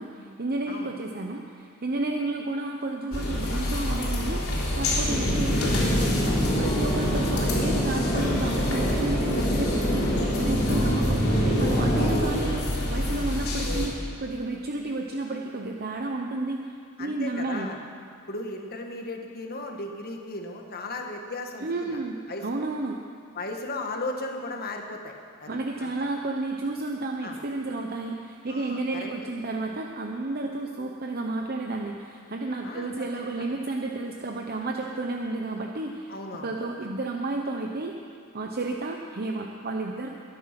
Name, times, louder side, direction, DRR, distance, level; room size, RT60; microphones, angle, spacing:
voice 1, 0.0-16.6 17.0-17.7 21.6-23.0 25.5-36.1 36.4-38.0 38.3-40.1, right 2 dB, 45° right, 2 dB, 0.8 m, -31 dB
sound 1, 3.1-13.9, left 1 dB, 75° left, 3.7 m, -28 dB
sound 2, 5.0-12.2, equal, 25° left, 3.0 m, -26 dB
voice 2, 17.0-17.8 18.3-21.9 22.3-22.7 23.3-25.1 25.4-26.1 27.2-27.4 28.5-29.1 32.6-32.9 36.1-36.5, left 2 dB, 45° left, 3 dB, 1.6 m, -36 dB
22.0 x 9.7 x 6.0 m, 2.3 s
head